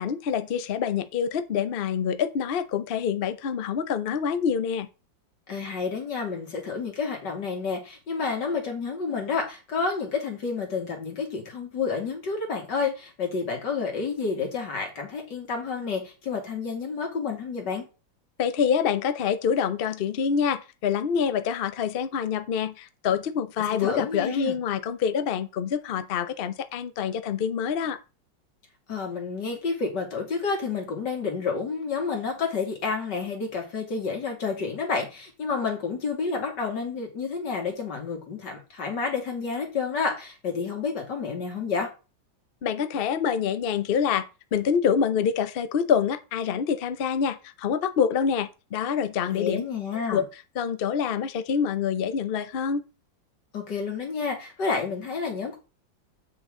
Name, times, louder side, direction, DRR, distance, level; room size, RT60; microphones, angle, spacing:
voice 1, 0.0-4.9 18.4-28.0 42.6-44.2 44.5-49.6 50.1-50.2 50.6-52.8, left 7 dB, 80° left, 0.5 m, -26 dB
voice 2, 5.5-17.8 23.8-24.6 28.9-41.9 49.3-50.3 53.5-55.6, left 5 dB, 65° left, 2.9 m, -30 dB
8.1 x 6.4 x 3.7 m
omnidirectional pair, 2.1 m